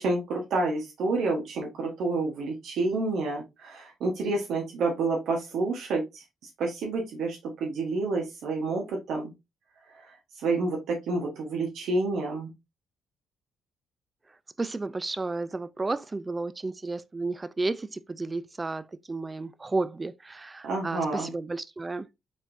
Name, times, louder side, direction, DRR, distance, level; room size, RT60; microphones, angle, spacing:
voice 1, 0.0-6.2 6.6-9.3 10.4-12.5 20.6-21.3, right 3 dB, 75° right, 1.2 m, -29 dB
voice 2, 14.6-22.1, right 3 dB, 25° right, 0.4 m, -32 dB
4.9 x 3.7 x 2.6 m
cardioid pair, 90°, 0 cm